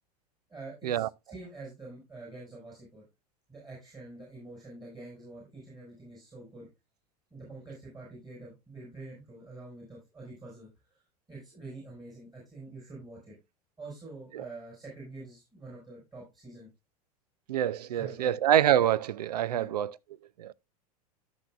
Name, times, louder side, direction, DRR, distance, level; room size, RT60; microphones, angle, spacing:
voice 1, 0.5-3.0 3.5-6.7 7.3-13.4 13.8-16.7 17.9-18.4 19.5-19.7, right 2 dB, 20° right, 5.2 m, -46 dB
voice 2, 17.5-19.9 20.4-20.5, right 11 dB, 85° right, 0.5 m, -26 dB
13.5 x 6.2 x 2.4 m
hypercardioid pair, 95°, 20 cm